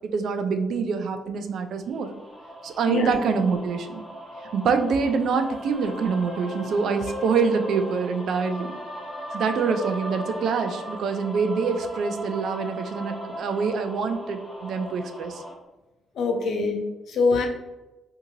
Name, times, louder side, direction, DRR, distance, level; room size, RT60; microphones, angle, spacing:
voice 1, 0.0-2.1 2.6-3.9 4.5-8.8 9.3-15.4, right 5 dB, 70° right, 8 dB, 0.3 m, -25 dB
sound 1, 2.0-15.5, equal, ahead, 1.2 m, -37 dB
voice 2, 16.1-17.5, left 4 dB, 65° left, 2 dB, 0.6 m, -24 dB
2.8 x 2.7 x 2.5 m, 1.1 s
cardioid pair, 90°, 0 cm